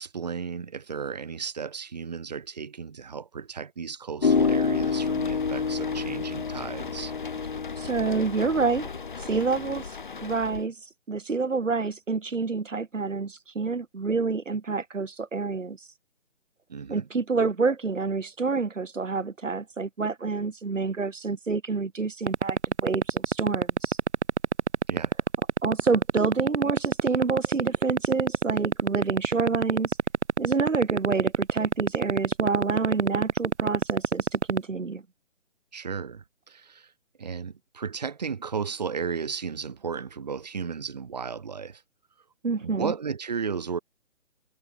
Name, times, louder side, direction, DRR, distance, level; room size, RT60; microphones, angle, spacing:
voice 1, 0.0-7.1 16.7-17.1 24.9-25.1 35.7-36.9 37.2-41.8 42.6-43.8, right 6 dB, 35° right, 5.7 m, -34 dB
sound 1, 4.2-10.6, left 5 dB, 40° left, 3.7 m, -29 dB
voice 2, 7.8-8.9 9.1-10.8 11.1-15.9 16.9-24.0 25.6-30.0 30.4-35.0 42.4-42.9, right 4 dB, 80° right, 4.1 m, -28 dB
sound 2, 22.3-34.6, right 6 dB, 65° right, 1.0 m, -21 dB
hypercardioid pair, 180°, 37 cm